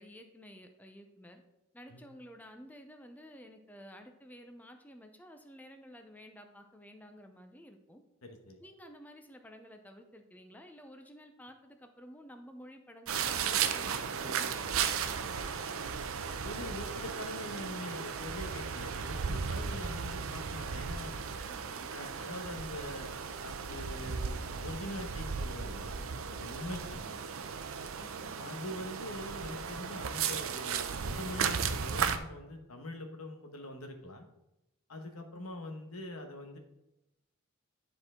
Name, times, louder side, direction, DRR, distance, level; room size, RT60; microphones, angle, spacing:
voice 1, 0.0-1.4 1.7-8.0 8.6-15.8 21.5-21.9 26.7-26.9 28.0-28.3, equal, 10° left, 5 dB, 0.5 m, -52 dB
voice 2, 8.2-8.6 16.4-21.2 21.9-23.1 23.4-27.2 28.4-34.3 34.9-36.6, left 1 dB, 85° left, 4 dB, 1.2 m, -43 dB
sound 1, 13.1-32.2, right 6 dB, 70° right, 0.5 m, -35 dB
10.0 x 4.5 x 3.7 m, 0.90 s
head